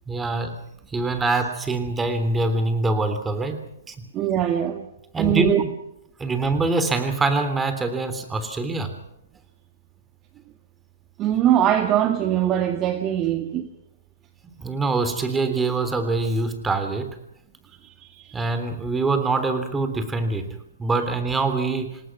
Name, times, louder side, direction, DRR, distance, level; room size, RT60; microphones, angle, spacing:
voice 1, 0.1-0.6 0.9-3.6 3.9-4.0 5.1-5.7 6.2-8.9 14.6-17.2 18.3-22.0, right 3 dB, 10° right, 3.4 m, -24 dB
voice 2, 4.1-4.9 5.2-5.6 11.2-13.7 17.8-18.4, right 11 dB, 25° right, 1.7 m, -22 dB
27.5 x 19.0 x 6.1 m
hypercardioid pair, 130°, 0 cm